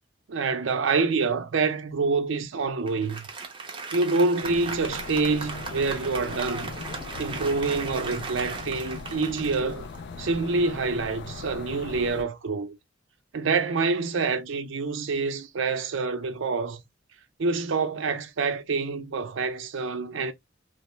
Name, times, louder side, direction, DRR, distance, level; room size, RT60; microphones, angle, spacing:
voice 1, 0.3-3.3 3.9-6.8 7.2-9.9 10.2-12.8 13.3-16.8 17.4-20.3, right 4 dB, 80° right, 0.5 m, -26 dB
Applause, 2.9-10.5, right 4 dB, 25° right, 0.5 m, -37 dB
sound 1, 4.4-12.2, left 4 dB, 60° left, 0.3 m, -39 dB
2.8 x 2.0 x 3.0 m
head